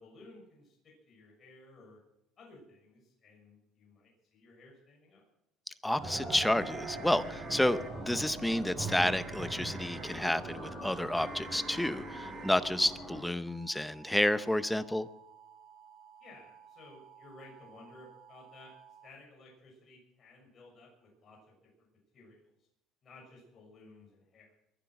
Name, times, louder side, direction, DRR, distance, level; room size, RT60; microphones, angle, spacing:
voice 1, 0.0-2.0 2.4-5.2 16.2-18.7 19.0-21.9 22.1-22.5 23.0-24.6, left 2 dB, 30° left, -2 dB, 6.3 m, -56 dB
voice 2, 5.8-15.1, left 1 dB, 5° left, 13 dB, 0.7 m, -30 dB
sound 1, 6.0-13.3, right 2 dB, 15° right, 5.4 m, -41 dB
sound 2, 6.6-7.9 8.9-10.2 11.2-12.5 13.5-19.1, right 6 dB, 40° right, 2.0 m, -53 dB
22.5 x 10.5 x 6.0 m, 0.84 s
cardioid pair, 150°, 0 cm